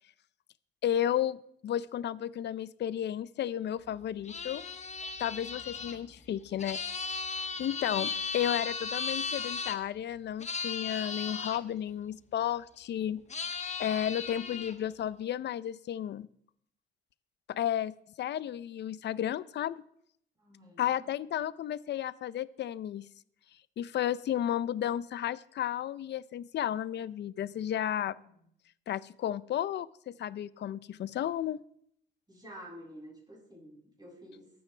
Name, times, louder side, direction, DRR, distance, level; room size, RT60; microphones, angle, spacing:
voice 1, 0.8-1.4 1.6-4.6 5.2-6.8 7.6-13.2 13.8-16.3 17.5-19.8 20.8-23.1 23.8-28.1 28.9-31.6, left 11 dB, 60° left, 17 dB, 0.6 m, -33 dB
sound 1, 4.2-9.8 10.4-11.6 13.3-14.7, left 5 dB, 35° left, 1.2 m, -36 dB
voice 2, 7.5-8.1 20.4-21.1 28.2-28.3 32.3-34.5, equal, 20° right, -2 dB, 7.3 m, -50 dB
23.0 x 9.4 x 3.4 m, 0.68 s
cardioid pair, 90°, 20 cm